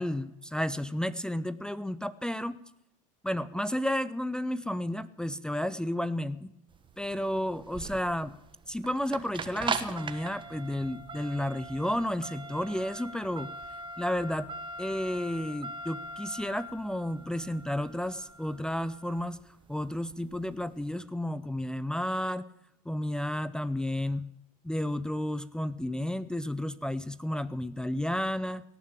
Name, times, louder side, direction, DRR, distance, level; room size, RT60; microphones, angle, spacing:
voice 1, 0.0-2.6 3.2-6.5 7.0-8.3 8.7-13.5 14.0-14.5 14.8-19.4 19.7-22.5 22.9-24.3 24.6-28.6, left 1 dB, 5° left, 14 dB, 0.6 m, -32 dB
sound 1, 6.7-20.8, right 4 dB, 25° right, 1.4 m, -41 dB
17.5 x 7.3 x 8.4 m, 0.83 s
hypercardioid pair, 85°, 18 cm